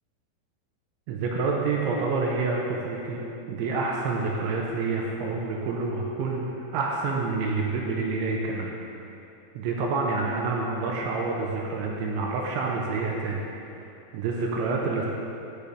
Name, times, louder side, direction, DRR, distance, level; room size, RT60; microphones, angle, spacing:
voice 1, 1.1-3.2 3.5-8.7 9.6-13.5 13.7-13.8 14.1-15.1, right 3 dB, 80° right, -1 dB, 2.9 m, -28 dB
15.5 x 6.8 x 3.4 m, 2.9 s
omnidirectional pair, 5.6 m